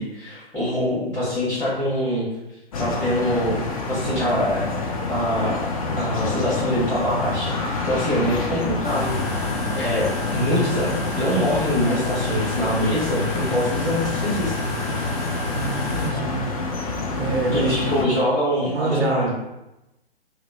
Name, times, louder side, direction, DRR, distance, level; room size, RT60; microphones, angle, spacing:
voice 1, 0.0-2.2 2.8-5.7 6.0-14.5 17.5-19.3, equal, 5° left, -13 dB, 0.7 m, -24 dB
sound 1, 2.7-18.1, left 3 dB, 35° left, 0.4 m, -28 dB
sound 2, 8.8-16.1, left 2 dB, 75° left, 0.9 m, -30 dB
voice 2, 15.5-16.5 16.9-17.7 18.6-19.3, right 4 dB, 90° right, 4 dB, 0.5 m, -27 dB
2.8 x 2.0 x 3.3 m, 0.94 s
figure-of-eight pair, 115°, 31 cm